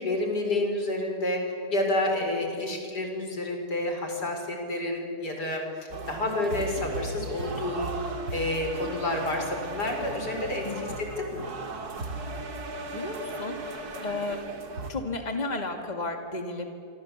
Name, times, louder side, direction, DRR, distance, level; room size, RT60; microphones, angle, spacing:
voice 1, 0.0-10.7 11.0-11.5, left 1 dB, 90° left, 3 dB, 5.3 m, -29 dB
sound 1, 5.9-14.9, right 2 dB, 70° right, 2.7 m, -36 dB
voice 2, 12.9-14.4 14.9-16.7, left 2 dB, 25° left, 4 dB, 2.5 m, -33 dB
26.0 x 26.0 x 8.3 m, 2.5 s
omnidirectional pair, 1.7 m